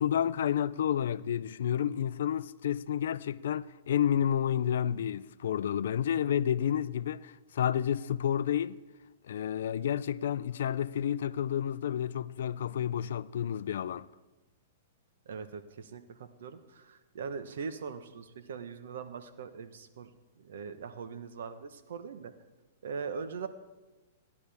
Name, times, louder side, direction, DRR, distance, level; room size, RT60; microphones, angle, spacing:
voice 1, 0.0-8.8 9.2-14.1, left 9 dB, 75° left, 0.4 m, -30 dB
voice 2, 15.3-20.1 20.4-22.3 22.8-23.5, right 5 dB, 75° right, 1.0 m, -41 dB
16.5 x 10.5 x 3.5 m
hypercardioid pair, 145°, 0 cm